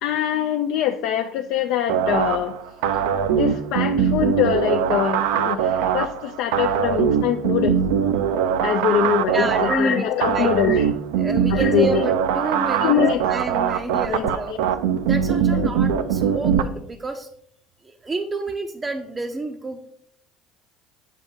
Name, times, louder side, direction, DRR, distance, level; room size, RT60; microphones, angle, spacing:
voice 1, 0.0-2.6 2.9-3.0 3.3-7.8 8.6-10.9 11.5-12.0 12.8-13.2 14.1-14.3 15.5-15.7, left 10 dB, 70° left, 5 dB, 0.3 m, -23 dB
sound 1, 1.9-16.6, right 8 dB, 85° right, 0.4 m, -22 dB
voice 2, 9.3-10.7 11.2-14.6 15.1-17.3 17.8-19.9, right 2 dB, 20° right, 4 dB, 0.5 m, -29 dB
7.4 x 2.5 x 5.0 m, 0.67 s
supercardioid pair, 105°, 0 cm